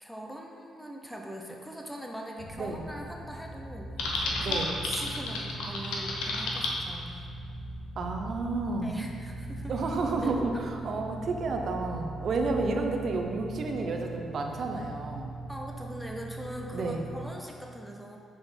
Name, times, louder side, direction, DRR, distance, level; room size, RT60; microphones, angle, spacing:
voice 1, 0.0-7.3 8.8-9.7 10.2-11.0 15.5-18.2, equal, ahead, 0 dB, 0.7 m, -41 dB
sound 1, 2.4-17.3, right 2 dB, 45° left, 1.0 m, -41 dB
Typing, 4.0-6.7, left 2 dB, 90° left, 0.9 m, -32 dB
voice 2, 4.4-4.7 8.0-8.9 9.7-15.3 16.7-17.0, right 3 dB, 55° right, 3 dB, 0.7 m, -31 dB
6.1 x 4.0 x 5.2 m, 2.3 s
cardioid pair, 90°, 0 cm